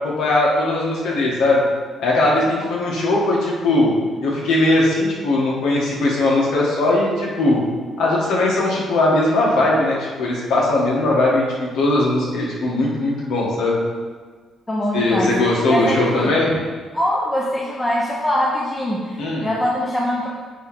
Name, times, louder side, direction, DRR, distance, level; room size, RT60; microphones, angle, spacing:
voice 1, 0.0-1.6 2.0-3.9 4.2-7.6 8.0-13.8 14.9-16.6 19.2-19.5, left 2 dB, 80° left, -4 dB, 1.9 m, -19 dB
voice 2, 14.7-15.4 15.7-16.4 16.9-20.3, left 1 dB, 20° left, -4 dB, 1.0 m, -22 dB
9.1 x 3.3 x 4.5 m, 1.5 s
cardioid pair, 90°, 0 cm